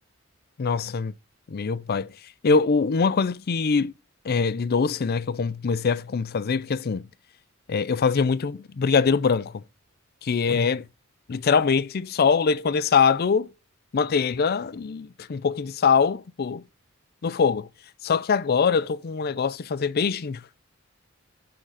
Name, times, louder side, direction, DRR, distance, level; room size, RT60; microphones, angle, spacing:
voice 1, 0.6-1.1 1.5-2.1 2.4-3.9 4.2-7.1 7.7-9.6 10.2-10.9 11.3-13.5 13.9-16.6 17.2-17.7 18.0-20.4, left 5 dB, 50° left, 0.4 m, -23 dB
9.8 x 3.9 x 4.7 m
head